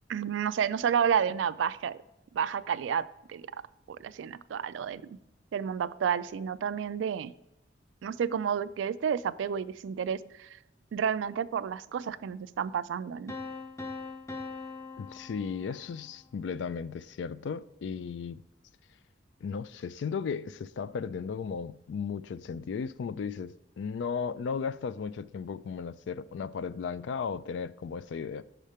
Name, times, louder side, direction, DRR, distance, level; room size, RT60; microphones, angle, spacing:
voice 1, 0.1-2.0 2.3-3.0 3.3-3.5 3.9-5.2 5.5-7.3 8.0-10.6 10.9-13.3, right 7 dB, 75° right, 0.3 m, -30 dB
sound 1, 13.3-16.2, left 3 dB, 15° left, 0.5 m, -41 dB
voice 2, 15.0-18.4 19.4-28.4, left 6 dB, 70° left, 0.3 m, -35 dB
6.4 x 5.0 x 4.2 m
head